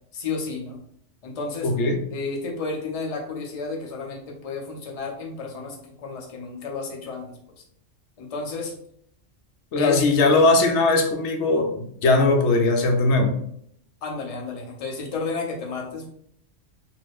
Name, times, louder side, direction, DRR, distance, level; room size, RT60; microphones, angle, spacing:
voice 1, 0.1-0.8 1.2-1.7 2.1-7.6 8.2-8.7 9.7-10.4 14.0-16.1, left 4 dB, 45° left, 0 dB, 0.5 m, -32 dB
voice 2, 1.6-2.0 9.7-13.4, left 3 dB, 70° left, 4 dB, 0.9 m, -19 dB
2.6 x 2.4 x 3.4 m, 0.69 s
omnidirectional pair, 1.3 m